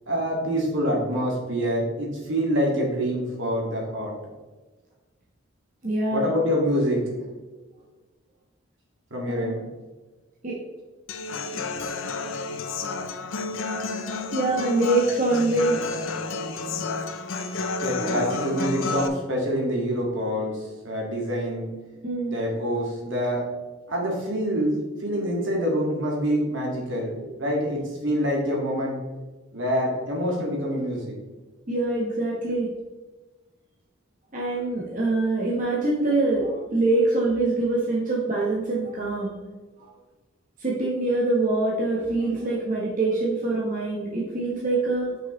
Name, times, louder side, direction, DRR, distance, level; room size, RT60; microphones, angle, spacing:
voice 1, 0.1-4.1 6.1-7.2 9.1-9.6 17.8-21.7 22.3-23.5 23.9-24.7 25.0-27.1 27.4-29.0 29.5-31.1, equal, 65° right, -2 dB, 2.1 m, -26 dB
voice 2, 5.8-6.3 9.3-9.6 10.4-10.6 14.3-15.8 18.0-18.3 22.0-22.3 25.1-25.2 31.7-32.7 34.3-39.3 39.8-39.9 40.6-45.1, right 2 dB, 40° right, -5 dB, 1.1 m, -24 dB
Human voice / Acoustic guitar, 11.1-19.1, left 3 dB, 75° left, 0.6 m, -30 dB
7.0 x 5.9 x 3.2 m, 1.2 s
head